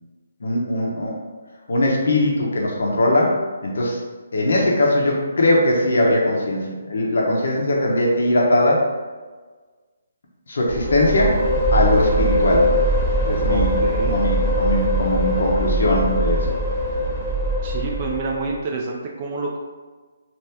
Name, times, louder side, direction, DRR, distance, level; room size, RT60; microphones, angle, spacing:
voice 1, 0.4-1.1 1.7-4.0 4.3-8.8 10.5-11.4 11.7-12.7 13.3-16.5, left 1 dB, 70° left, -2 dB, 0.9 m, -20 dB
sound 1, 10.7-18.5, equal, 5° left, 1.0 m, -21 dB
voice 2, 13.5-14.2 17.6-19.6, right 3 dB, 35° right, -1 dB, 0.4 m, -28 dB
2.9 x 2.7 x 3.4 m, 1.4 s
hypercardioid pair, 150°, 0 cm